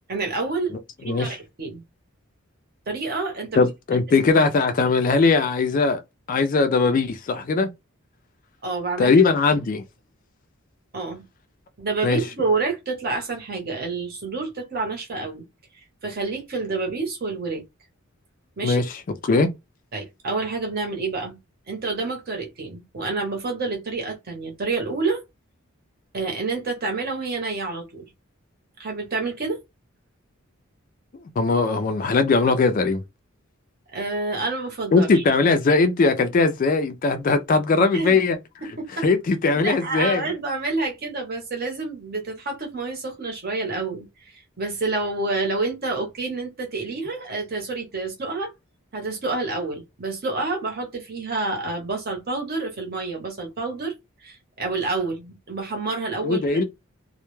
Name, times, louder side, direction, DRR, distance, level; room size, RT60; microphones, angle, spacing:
voice 1, 0.1-0.8 1.0-1.8 2.9-3.7 8.6-9.1 10.9-11.2 11.8-15.5 16.0-17.6 18.6-18.8 19.9-21.4 21.7-25.2 26.1-28.1 28.8-29.6 33.9-35.2 37.9-38.2 38.6-39.1 39.6-44.1 44.6-48.5 48.9-53.9 54.2-56.6, right 3 dB, 45° right, 0.8 m, -28 dB
voice 2, 1.1-1.4 3.6-6.0 6.3-7.7 9.0-9.8 12.0-12.2 18.6-19.5 31.4-33.0 34.9-38.4 39.0-40.3 56.2-56.6, left 4 dB, 40° left, 0.3 m, -20 dB
2.1 x 2.1 x 3.0 m
head